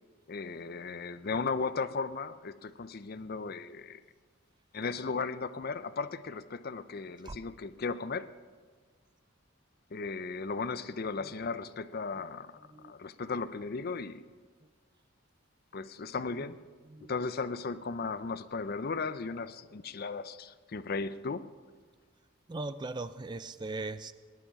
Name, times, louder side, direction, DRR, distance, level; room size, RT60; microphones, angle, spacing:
voice 1, 0.3-4.0 4.7-8.3 9.9-14.3 15.7-16.6 17.1-21.5, left 4 dB, 45° left, 0.5 m, -36 dB
voice 2, 16.8-17.2 22.5-24.1, right 3 dB, 20° right, 0.4 m, -40 dB
19.0 x 11.5 x 5.7 m
head